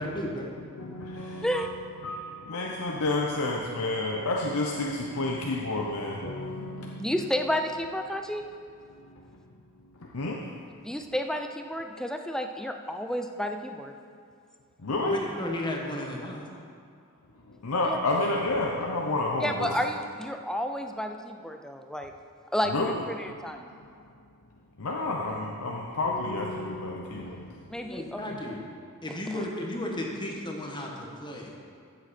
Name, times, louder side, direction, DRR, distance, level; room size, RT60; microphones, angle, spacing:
voice 1, 0.0-0.6 15.0-16.5 27.9-28.6 29.0-31.5, left 1 dB, 20° left, 0 dB, 1.4 m, -34 dB
voice 2, 0.7-1.7 2.0-7.1 8.9-9.4 9.7-10.6 14.8-15.3 17.3-19.8 22.7-22.9 23.2-23.4 23.8-24.4 24.8-27.9 28.3-28.4, left 2 dB, 80° left, -1 dB, 0.8 m, -31 dB
voice 3, 7.0-8.4 10.8-13.9 17.9-18.0 19.4-22.1 22.5-23.7 27.7-28.2, equal, 5° left, 5 dB, 0.5 m, -31 dB
14.5 x 7.7 x 4.3 m, 2.2 s
head